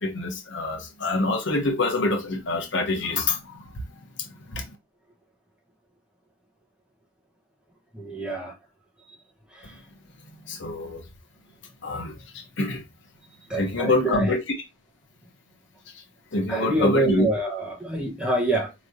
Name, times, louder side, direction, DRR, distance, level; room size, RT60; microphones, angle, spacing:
voice 1, 0.0-3.8 4.2-4.7 10.4-11.0 11.8-12.8 13.6-14.4 15.9-16.0 16.3-17.3, left 2 dB, 65° left, 0.9 m, -26 dB
voice 2, 7.9-8.6 9.5-9.8 13.5-14.3 16.5-18.7, right 2 dB, 5° right, 1.0 m, -26 dB
4.6 x 3.1 x 2.6 m
head